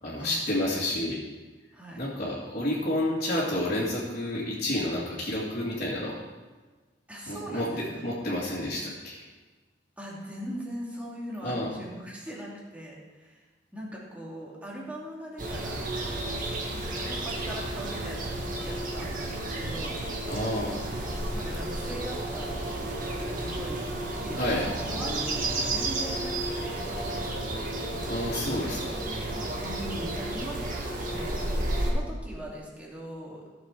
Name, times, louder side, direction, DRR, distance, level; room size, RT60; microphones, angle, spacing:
voice 1, 0.0-1.2 2.0-6.2 7.3-7.7 8.0-9.2 11.4-11.7 20.3-20.8 24.4-24.7 28.1-29.0, left 1 dB, 45° left, -8 dB, 2.4 m, -30 dB
voice 2, 7.1-8.0 10.0-13.4 13.7-15.9 16.7-20.0 21.3-23.9 24.2-27.0 28.3-28.9 29.6-33.4, right 1 dB, 10° right, -5 dB, 2.6 m, -40 dB
sound 1, 15.4-31.9, right 1 dB, 50° right, 1.8 m, -32 dB
15.5 x 6.8 x 4.7 m, 1.3 s
head